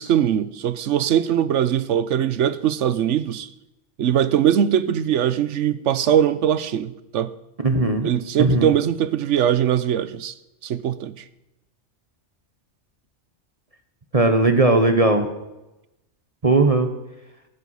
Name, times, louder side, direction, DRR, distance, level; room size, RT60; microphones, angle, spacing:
voice 1, 0.0-3.5 4.0-7.3 8.0-10.3 10.6-11.1, right 9 dB, 85° right, 1.1 m, -21 dB
voice 2, 7.6-8.1 8.4-8.7 14.1-15.3 16.4-16.9, right 2 dB, 30° right, 1.2 m, -17 dB
17.5 x 9.4 x 5.6 m
omnidirectional pair, 1.2 m